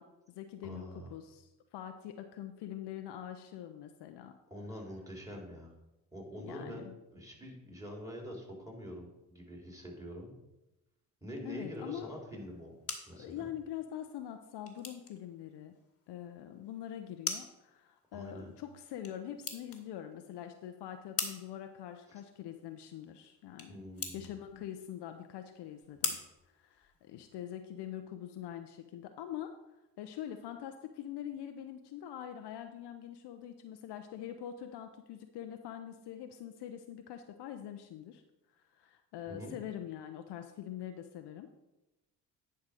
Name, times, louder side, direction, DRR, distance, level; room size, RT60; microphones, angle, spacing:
voice 1, 0.0-4.3 6.4-6.9 11.4-12.1 13.1-15.7 16.1-23.8 24.1-26.2 26.5-29.5 30.0-38.2 38.7-41.5, left 10 dB, 55° left, 7 dB, 0.8 m, -44 dB
voice 2, 0.6-1.1 4.5-5.7 6.1-10.3 11.2-12.8 13.1-13.5 18.1-18.5 23.7-24.3 39.3-39.5, equal, 5° right, -1 dB, 3.5 m, -45 dB
sound 1, 12.4-27.4, left 5 dB, 30° left, 1.7 m, -44 dB
10.5 x 4.6 x 5.0 m, 0.96 s
hypercardioid pair, 50°, 49 cm